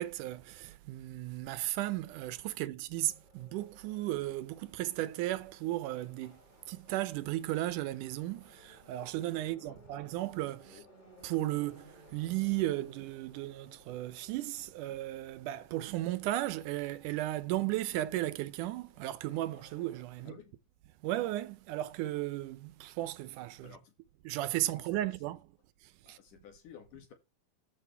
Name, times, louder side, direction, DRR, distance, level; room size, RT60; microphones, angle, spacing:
voice 1, 0.0-6.4 6.7-10.8 11.2-20.3 21.0-23.8 24.3-25.4 25.8-26.2, right 15 dB, 75° right, 2.0 m, -35 dB
Subway metro underground, 3.0-20.0, equal, 15° left, 3.1 m, -61 dB
voice 2, 20.2-20.6 23.6-23.9 24.7-25.1 26.0-27.1, left 8 dB, 65° left, 3.5 m, -54 dB
14.0 x 6.5 x 3.4 m
omnidirectional pair, 4.0 m